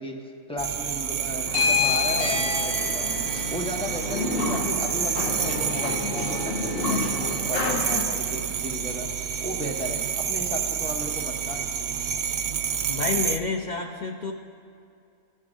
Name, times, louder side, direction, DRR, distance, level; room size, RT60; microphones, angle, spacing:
voice 1, 0.0-11.7, equal, 5° left, 0 dB, 0.8 m, -35 dB
sound 1, 0.6-13.4, right 8 dB, 90° right, 0.4 m, -29 dB
sound 2, 1.5-8.0, left 4 dB, 50° left, 1.2 m, -28 dB
voice 2, 12.9-14.3, left 4 dB, 70° left, 3 dB, 0.4 m, -29 dB
16.0 x 6.7 x 3.7 m, 2.4 s
omnidirectional pair, 1.4 m